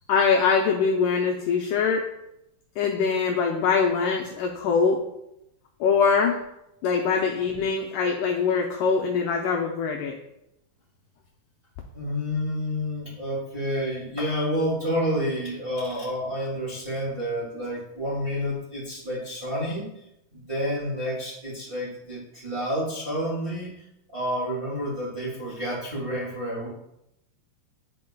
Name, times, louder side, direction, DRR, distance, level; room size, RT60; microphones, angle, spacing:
voice 1, 0.1-2.1 2.8-5.1 5.8-6.4 6.8-10.2, left 5 dB, 85° left, 1 dB, 1.8 m, -23 dB
voice 2, 11.9-19.8 20.3-23.7 24.1-26.7, equal, 20° right, -7 dB, 1.7 m, -29 dB
11.0 x 4.5 x 2.2 m, 0.84 s
omnidirectional pair, 4.4 m